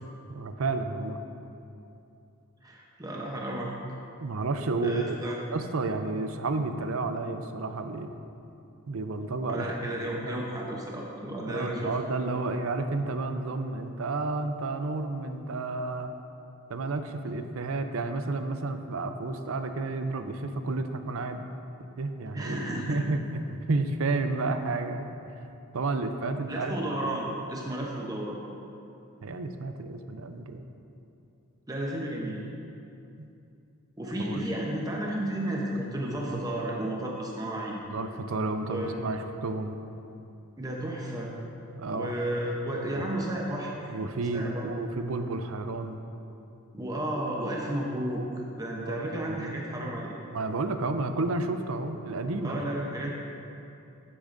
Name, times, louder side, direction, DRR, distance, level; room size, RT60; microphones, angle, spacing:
voice 1, 0.3-1.2 4.2-8.1 8.9-9.8 10.2-10.4 11.4-16.1 16.7-21.5 22.0-25.1 25.4-27.0 29.2-30.6 33.2-33.3 34.2-34.4 37.9-39.8 41.7-42.2 43.9-46.0 48.8-49.5 50.3-52.6, right 3 dB, 70° right, 7 dB, 0.5 m, -31 dB
voice 2, 2.6-3.7 4.8-5.4 9.5-11.9 22.3-23.0 26.5-28.4 31.7-32.4 34.0-37.8 38.7-38.9 40.6-41.3 41.9-43.9 44.3-44.6 46.7-48.2 48.6-50.1 52.4-53.1, right 1 dB, 15° right, -2 dB, 0.8 m, -32 dB
11.5 x 8.5 x 2.6 m, 2.7 s
head